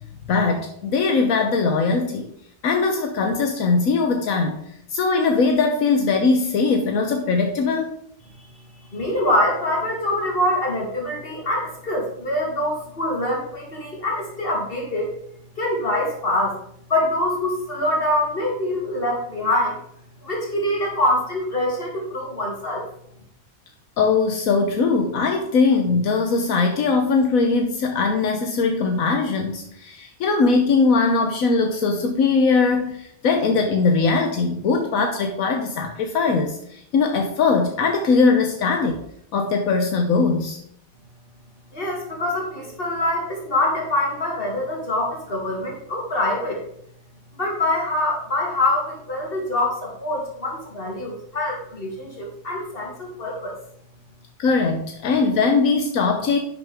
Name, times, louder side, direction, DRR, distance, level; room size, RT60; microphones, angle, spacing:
voice 1, 0.3-2.3 2.6-4.6 4.9-7.9 24.0-39.0 39.3-40.6 54.4-56.4, left 4 dB, 80° left, 4 dB, 1.3 m, -20 dB
voice 2, 8.9-15.1 15.6-16.6 16.9-19.8 20.2-22.8 41.7-46.6 47.3-53.6, left 1 dB, 40° left, -1 dB, 3.0 m, -24 dB
10.5 x 6.7 x 3.5 m, 0.71 s
omnidirectional pair, 1.4 m